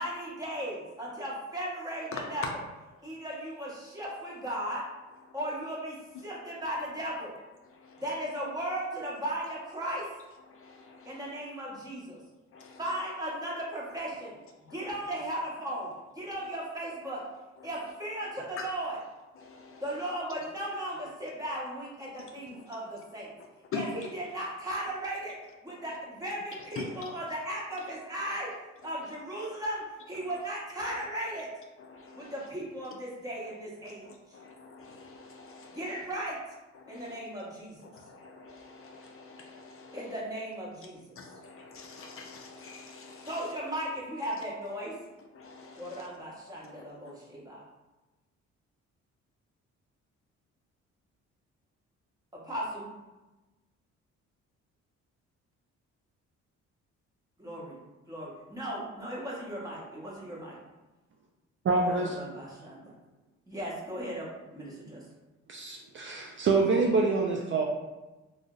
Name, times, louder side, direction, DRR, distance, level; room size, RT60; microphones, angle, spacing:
voice 1, 0.0-2.4 3.0-4.8 5.3-7.3 8.0-10.1 11.0-12.2 12.8-14.4 14.7-17.2 17.6-19.0 19.8-23.3 23.7-25.4 25.6-28.5 28.8-31.5 32.2-34.4 35.7-36.4 36.9-37.7 39.9-41.2 43.3-44.9 45.8-47.6 52.3-52.9 57.4-57.8 58.1-60.6 61.8-62.8 63.5-65.0, right 1 dB, 10° right, -5 dB, 1.0 m, -36 dB
voice 2, 7.7-8.0 10.5-11.3 12.5-12.8 14.7-14.8 18.6-18.7 19.3-19.8 22.2-22.6 23.7-23.9 26.8-27.0 30.2-30.3 31.9-32.3 33.5-33.6 33.8-36.0 36.9-37.2 37.9-40.1 41.2-43.4 45.3-46.1 46.8-46.9, left 5 dB, 45° left, 2 dB, 0.4 m, -45 dB
voice 3, 61.6-62.2 65.5-67.7, right 3 dB, 40° right, 0 dB, 0.4 m, -26 dB
2.5 x 2.0 x 3.7 m, 1.1 s
cardioid pair, 90°, 30 cm